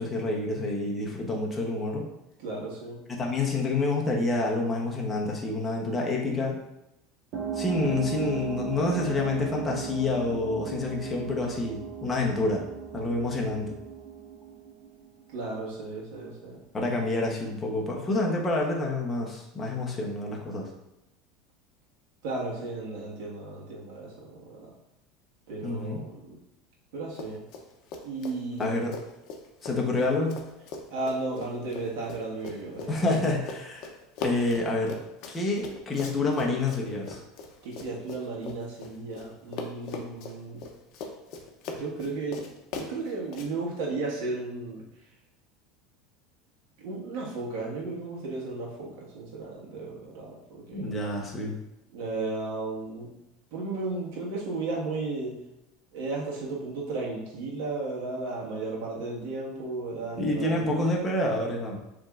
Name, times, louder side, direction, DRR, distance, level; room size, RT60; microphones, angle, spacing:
voice 1, 0.0-2.0 3.2-6.6 7.5-12.6 12.9-13.8 16.7-20.7 25.6-26.0 28.6-28.9 29.6-30.4 32.9-33.9 34.2-35.0 35.3-37.2 50.7-51.6 60.2-61.8, left 2 dB, 15° left, -2 dB, 0.8 m, -28 dB
voice 2, 2.4-3.0 15.3-16.6 22.2-24.7 25.5-26.4 26.9-27.4 28.0-28.7 30.9-33.1 37.6-40.6 41.6-42.4 42.7-44.9 46.8-50.9 51.9-53.1 53.5-55.4 55.9-60.8, right 3 dB, 70° right, -3 dB, 1.5 m, -34 dB
sound 1, 7.3-15.5, right 7 dB, 45° right, 1.6 m, -36 dB
Run, 27.1-27.6 27.9-39.3 39.5-43.5, left 3 dB, 50° left, 0.7 m, -40 dB
7.0 x 3.1 x 2.4 m, 0.89 s
supercardioid pair, 155°, 0 cm